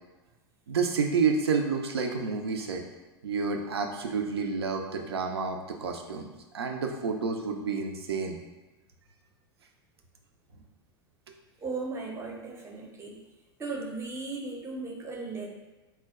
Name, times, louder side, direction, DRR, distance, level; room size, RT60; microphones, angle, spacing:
voice 1, 0.7-2.8 3.2-6.3 6.5-8.4, right 5 dB, 80° right, 3 dB, 0.4 m, -29 dB
voice 2, 11.6-13.2 13.6-15.5, right 3 dB, 20° right, 0 dB, 0.5 m, -36 dB
2.2 x 2.1 x 3.4 m, 1.1 s
figure-of-eight pair, 85°, 13 cm